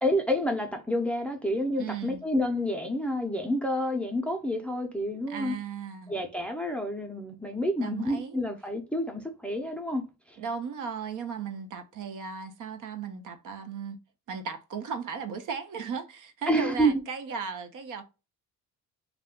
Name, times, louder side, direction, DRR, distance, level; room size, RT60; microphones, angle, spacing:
voice 1, 0.0-5.6 6.1-10.4 16.5-17.0, equal, 5° left, 0.5 m, -29 dB
voice 2, 1.8-2.2 5.3-6.1 7.8-8.4 10.4-14.0 14.3-18.0, right 6 dB, 60° right, 0.7 m, -36 dB
2.4 x 2.2 x 3.5 m
cardioid pair, 90°, 36 cm